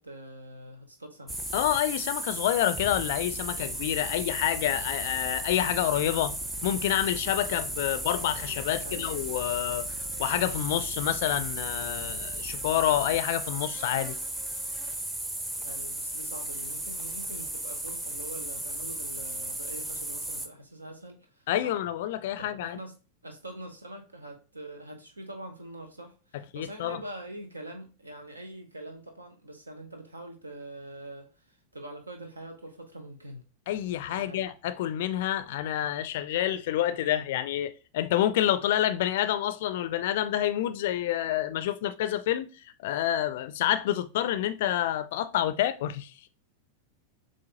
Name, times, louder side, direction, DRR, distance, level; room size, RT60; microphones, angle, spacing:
voice 1, 0.0-1.4 8.7-9.0 15.5-21.7 22.4-22.9 23.2-33.4 34.1-34.5 34.8-34.9, right 1 dB, 80° right, 0.8 m, -44 dB
sound 1, 1.3-20.5, right 1 dB, 10° right, 0.7 m, -35 dB
voice 2, 1.5-6.3 6.6-14.2 21.5-22.8 26.5-27.0 33.7-42.5 42.8-46.1, left 12 dB, 55° left, 0.4 m, -28 dB
7.3 x 2.6 x 2.8 m
figure-of-eight pair, 90°, 0 cm